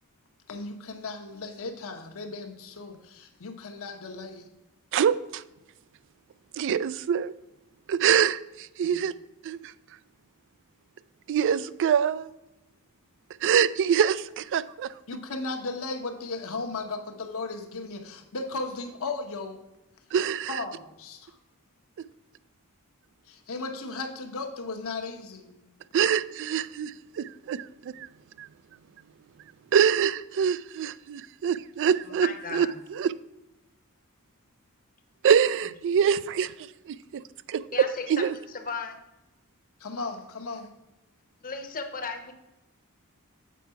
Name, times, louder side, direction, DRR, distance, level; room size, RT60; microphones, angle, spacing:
voice 1, 0.5-4.5 8.8-9.0 15.1-19.6 20.5-21.3 23.3-25.6 39.8-40.7, left 3 dB, 65° left, 4 dB, 1.0 m, -36 dB
voice 2, 4.9-5.4 6.6-7.3 7.9-9.1 9.4-9.7 11.3-12.3 13.4-14.9 20.1-20.6 25.9-28.1 28.4-28.5 29.7-33.1 35.2-36.5 36.9-37.2 37.5-37.6 38.1-38.3, right 8 dB, 55° right, 17 dB, 0.3 m, -25 dB
voice 3, 32.1-32.7 37.7-38.2 38.6-39.0 41.4-42.3, left 4 dB, 40° left, 5 dB, 0.9 m, -35 dB
7.4 x 4.7 x 5.6 m, 0.94 s
head